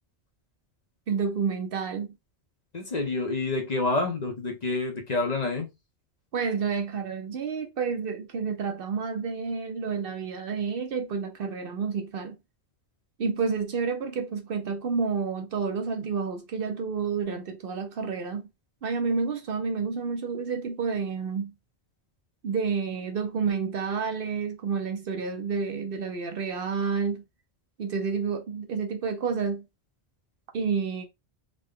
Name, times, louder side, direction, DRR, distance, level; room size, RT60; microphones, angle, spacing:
voice 1, 1.1-2.2 6.3-12.4 13.2-18.5 18.8-21.5 22.4-27.2 27.8-29.7 30.5-31.0, right 5 dB, 60° right, 0.8 m, -29 dB
voice 2, 2.7-5.7, left 3 dB, 45° left, 0.8 m, -28 dB
3.8 x 2.1 x 3.5 m
omnidirectional pair, 1.1 m